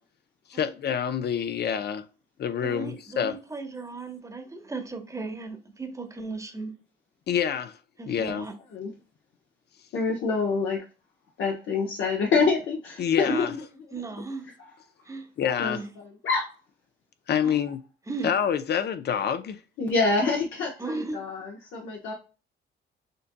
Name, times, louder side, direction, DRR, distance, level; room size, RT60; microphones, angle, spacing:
voice 1, 0.5-2.0 2.4-3.4 7.3-7.8 8.1-8.5 13.0-13.5 15.4-15.8 17.3-17.8 18.2-19.6, left 8 dB, 55° left, 0.6 m, -27 dB
voice 2, 2.6-6.7 8.0-8.5 13.2-13.5 13.9-14.5 15.1-15.3 15.7-15.8 17.4-17.6 18.1-18.3 20.8-21.2, right 3 dB, 15° right, 1.0 m, -35 dB
voice 3, 9.9-10.8 11.4-13.5 15.6-15.8 16.2-16.5 19.8-22.1, left 4 dB, 75° left, 1.0 m, -26 dB
6.6 x 2.7 x 2.2 m
cardioid pair, 90°, 20 cm